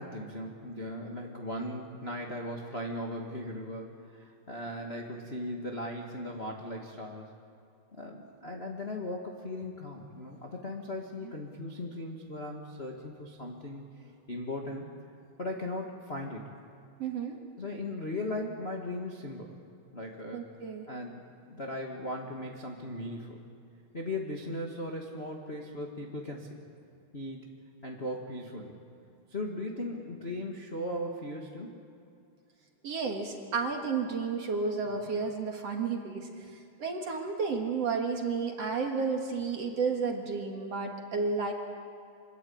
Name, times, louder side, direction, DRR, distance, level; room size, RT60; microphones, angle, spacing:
voice 1, 0.0-7.3 7.9-13.8 14.3-14.8 15.4-16.4 17.6-19.6 19.9-20.4 20.9-23.4 23.9-26.5 27.1-27.4 27.8-28.8 29.3-31.8, left 1 dB, 40° left, 0 dB, 0.9 m, -38 dB
voice 2, 17.0-17.4 20.3-20.9 32.8-36.3 36.8-41.5, right 4 dB, 50° right, 2 dB, 2.4 m, -32 dB
25.5 x 21.5 x 8.7 m, 2.5 s
omnidirectional pair, 4.6 m